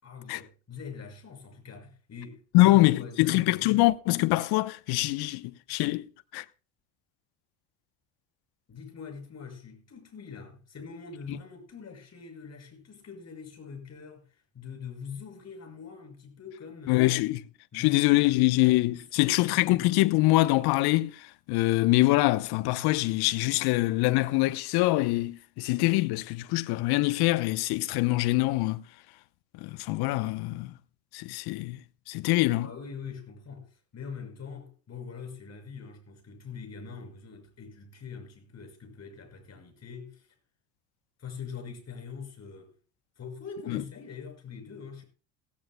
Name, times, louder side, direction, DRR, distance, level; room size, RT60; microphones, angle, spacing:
voice 1, 0.0-3.8 8.7-17.1 17.7-20.0 32.5-40.3 41.2-42.7 43.2-45.0, left 6 dB, 35° left, 6.0 m, -43 dB
voice 2, 2.5-6.4 16.9-17.4 17.7-28.8 29.5-30.7 31.1-31.8 32.1-32.7 43.7-43.8, left 19 dB, 60° left, 0.9 m, -24 dB
16.5 x 15.5 x 2.2 m
hypercardioid pair, 70°, 44 cm